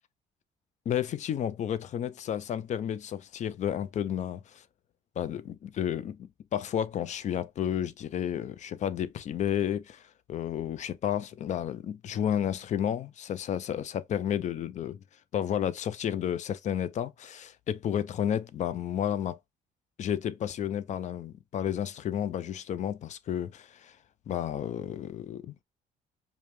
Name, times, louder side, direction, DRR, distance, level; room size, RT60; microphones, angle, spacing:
voice 1, 0.9-4.6 5.2-10.0 10.3-15.0 15.3-19.4 20.0-24.0 24.3-25.6, left 9 dB, 45° left, 0.5 m, -31 dB
5.1 x 2.2 x 3.0 m
cardioid pair, 110°, 17 cm